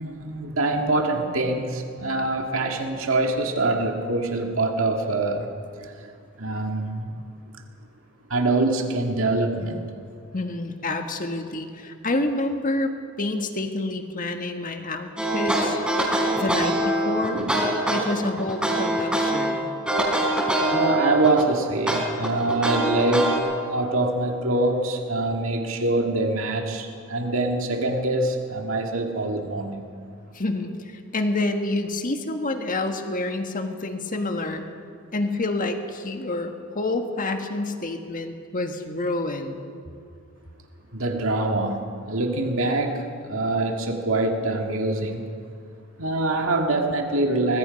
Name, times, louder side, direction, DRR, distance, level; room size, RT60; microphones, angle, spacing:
voice 1, 0.0-5.5 5.8-5.9 6.4-7.2 8.3-9.9 17.3-17.6 20.6-29.9 40.9-45.2 46.0-47.6, right 2 dB, 70° right, 3 dB, 2.1 m, -24 dB
voice 2, 10.3-12.9 13.2-15.8 16.3-17.4 17.9-19.6 30.3-34.7 35.1-39.6, left 2 dB, 40° left, 5 dB, 1.6 m, -28 dB
sound 1, 15.2-19.5 19.9-21.5 21.9-23.4, right 1 dB, 5° right, 4.6 m, -23 dB
24.0 x 20.5 x 5.3 m, 2.3 s
head